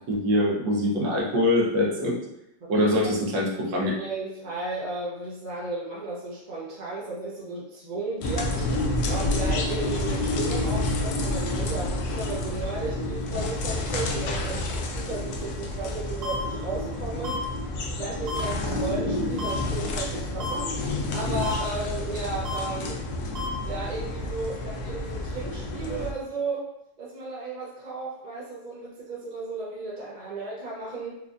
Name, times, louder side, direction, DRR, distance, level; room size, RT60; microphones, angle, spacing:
voice 1, 0.1-2.2 2.7-3.9, left 1 dB, 75° right, -3 dB, 1.6 m, -23 dB
voice 2, 2.6-2.9 3.8-17.4 17.9-23.0 23.6-26.7 27.0-31.2, right 3 dB, 40° right, -7 dB, 0.6 m, -34 dB
sound 1, 8.2-26.1, left 2 dB, 70° left, 1.0 m, -29 dB
sound 2, 16.2-16.4 17.2-17.4 18.3-18.4 19.4-19.5 20.4-20.5 21.4-21.5 22.4-22.6 23.4-23.5, left 3 dB, 60° right, 0.9 m, -32 dB
4.5 x 2.4 x 2.5 m, 0.83 s
omnidirectional pair, 2.0 m